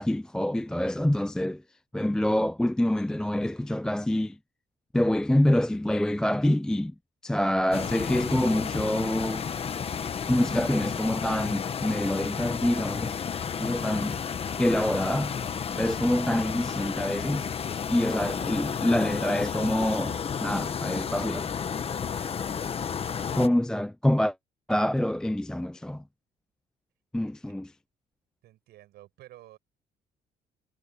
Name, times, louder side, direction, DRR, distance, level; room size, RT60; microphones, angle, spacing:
voice 1, 0.0-1.6 1.9-4.4 4.9-6.9 7.2-9.4 10.3-13.2 13.6-14.2 14.6-15.3 15.8-17.5 17.9-21.5 23.3-24.3 24.7-26.0 27.1-27.7, left 1 dB, 5° left, 0.4 m, -26 dB
sound 1, 7.7-23.5, left 7 dB, 35° left, 1.2 m, -32 dB
voice 2, 22.6-23.3 27.2-27.5 28.4-29.6, right 14 dB, 75° right, 6.6 m, -53 dB
cardioid pair, 110°, 17 cm